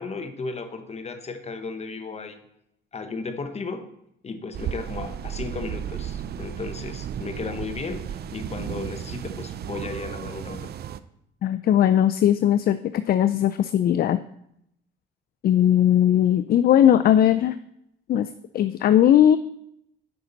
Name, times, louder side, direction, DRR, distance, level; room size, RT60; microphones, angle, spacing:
voice 1, 0.0-2.4 2.9-3.9 4.2-10.7, left 4 dB, 30° left, 8 dB, 1.1 m, -34 dB
sound 1, 4.5-11.0, right 9 dB, 55° right, 0.5 m, -34 dB
voice 2, 11.4-14.2 15.4-17.6 18.1-18.3 18.5-19.4, left 10 dB, 50° left, 13 dB, 0.4 m, -19 dB
9.3 x 5.7 x 4.0 m, 0.76 s
cardioid pair, 80°, 20 cm